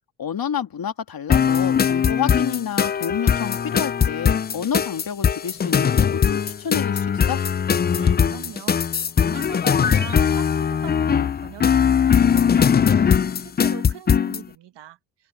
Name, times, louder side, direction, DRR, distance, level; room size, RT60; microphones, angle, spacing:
voice 1, 0.2-7.4, left 8 dB, 55° left, 2.3 m, -29 dB
sound 1, 1.3-14.4, left 7 dB, 25° left, 0.4 m, -20 dB
voice 2, 7.9-15.3, right 12 dB, 70° right, 1.6 m, -41 dB
supercardioid pair, 55°, 43 cm